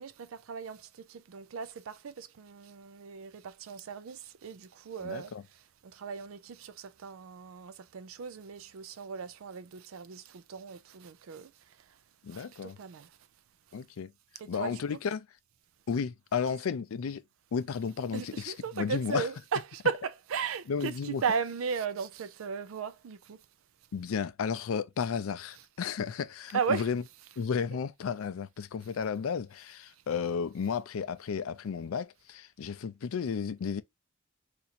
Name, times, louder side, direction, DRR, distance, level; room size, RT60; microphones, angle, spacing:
voice 1, 0.0-11.5 12.3-13.1 14.4-15.0 18.1-23.4 25.5-25.7 26.5-27.4, right 6 dB, 75° right, 0.4 m, -36 dB
voice 2, 5.0-5.4 12.2-12.8 13.7-14.1 14.5-15.2 15.9-17.2 17.5-19.3 20.7-21.2 23.9-27.0 27.4-33.8, left 6 dB, 80° left, 0.4 m, -33 dB
2.8 x 2.6 x 4.2 m
head